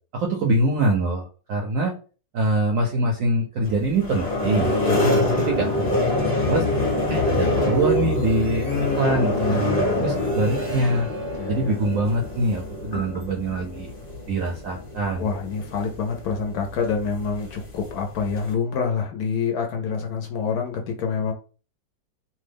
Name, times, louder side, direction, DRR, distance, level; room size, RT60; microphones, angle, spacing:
voice 1, 0.1-1.9 2.3-4.7 5.0-5.1 5.4-6.7 7.1-8.7 9.0-9.8 10.0-11.1 11.5-13.9 14.3-15.2, right 2 dB, 70° right, 0 dB, 0.8 m, -24 dB
sound 1, 3.6-18.5, left 1 dB, 30° left, 0.9 m, -26 dB
voice 2, 4.8-5.3 8.6-10.3 11.4-11.8 15.2-21.3, left 5 dB, 70° left, 2 dB, 1.0 m, -27 dB
2.9 x 2.2 x 3.4 m, 0.37 s
omnidirectional pair, 1.9 m